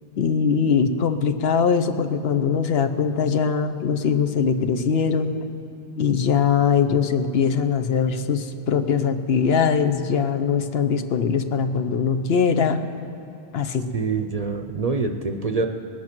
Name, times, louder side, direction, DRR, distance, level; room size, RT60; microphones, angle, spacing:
voice 1, 0.2-5.3 6.0-12.8 13.5-13.9, left 6 dB, 70° left, 9 dB, 1.0 m, -21 dB
voice 2, 13.9-15.7, right 4 dB, 40° right, 6 dB, 0.7 m, -25 dB
20.0 x 8.4 x 6.0 m, 3.0 s
omnidirectional pair, 1.1 m